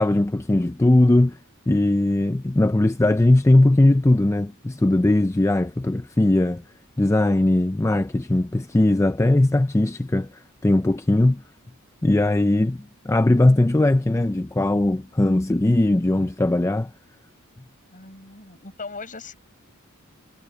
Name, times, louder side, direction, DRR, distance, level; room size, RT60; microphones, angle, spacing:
voice 1, 0.0-1.4 1.7-6.6 7.0-11.4 12.0-16.9, left 1 dB, 15° left, 0.4 m, -19 dB
voice 2, 17.9-19.4, left 4 dB, 40° left, 8.0 m, -39 dB
head